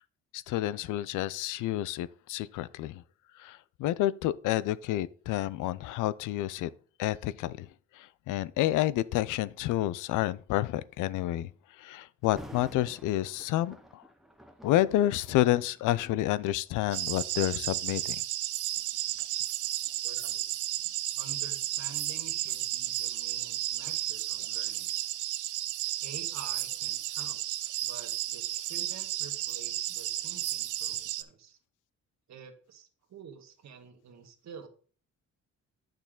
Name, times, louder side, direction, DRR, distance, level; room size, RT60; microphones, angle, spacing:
voice 1, 0.3-3.0 3.4-6.7 7.0-7.7 7.9-11.5 11.8-14.0 14.6-18.2, left 14 dB, 90° left, 0.5 m, -29 dB
Thunder, 12.2-17.2 17.9-18.1 18.7-21.5 21.9-22.0, equal, ahead, 1.1 m, -51 dB
sound 1, 16.9-31.2, right 14 dB, 90° right, 0.7 m, -33 dB
voice 2, 20.0-20.5 21.1-24.9 26.0-27.4 27.8-31.6 32.3-34.7, right 6 dB, 65° right, 1.6 m, -49 dB
8.4 x 6.6 x 3.8 m
cardioid pair, 90°, 30 cm